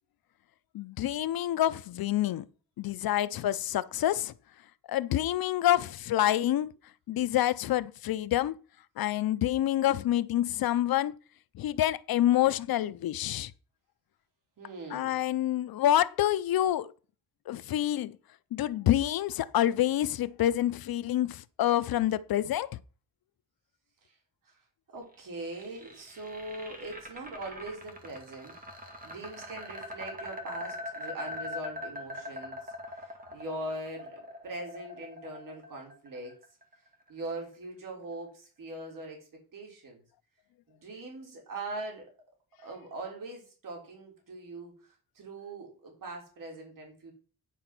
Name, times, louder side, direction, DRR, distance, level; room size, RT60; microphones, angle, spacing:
voice 1, 0.7-2.4 2.8-4.3 4.9-6.7 7.1-8.6 9.0-11.1 11.5-13.5 14.9-16.9 17.5-18.2 18.5-22.7, left 13 dB, 75° left, 0.6 m, -27 dB
voice 2, 14.6-15.3 24.0-24.1 24.5-24.6 24.9-36.4 37.1-40.0 40.7-42.1 42.6-47.1, right 2 dB, 60° right, 3.8 m, -41 dB
sound 1, 25.1-37.2, left 1 dB, 25° right, 2.0 m, -42 dB
10.0 x 4.9 x 6.0 m
wide cardioid pair, 180°, 36 cm